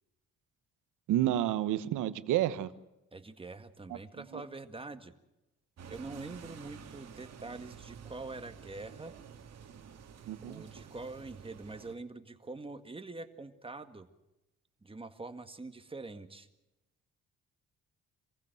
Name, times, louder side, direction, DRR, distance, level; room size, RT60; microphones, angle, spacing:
voice 1, 1.1-2.7 10.3-10.6, right 12 dB, 90° right, 13 dB, 1.1 m, -29 dB
voice 2, 3.1-5.1 5.9-9.1 10.4-14.1 14.8-16.5, right 3 dB, 20° right, 8 dB, 1.8 m, -44 dB
sound 1, 5.8-11.9, right 7 dB, 60° right, 2.1 m, -50 dB
26.5 x 15.5 x 7.8 m, 0.96 s
cardioid pair, 90°, 30 cm